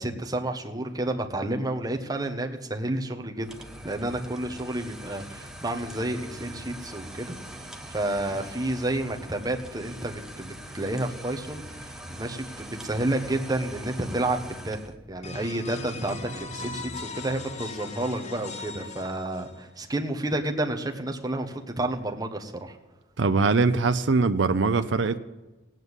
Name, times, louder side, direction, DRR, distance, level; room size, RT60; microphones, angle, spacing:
voice 1, 0.0-3.5 3.8-7.3 7.6-14.8 15.1-22.8, right 1 dB, 20° right, 1.2 m, -30 dB
sound 1, 3.4-15.0, right 1 dB, 5° right, 0.9 m, -42 dB
sound 2, 15.2-19.8, left 3 dB, 35° left, 1.0 m, -38 dB
voice 2, 23.2-25.2, right 4 dB, 75° right, 0.6 m, -22 dB
17.0 x 9.2 x 8.1 m
head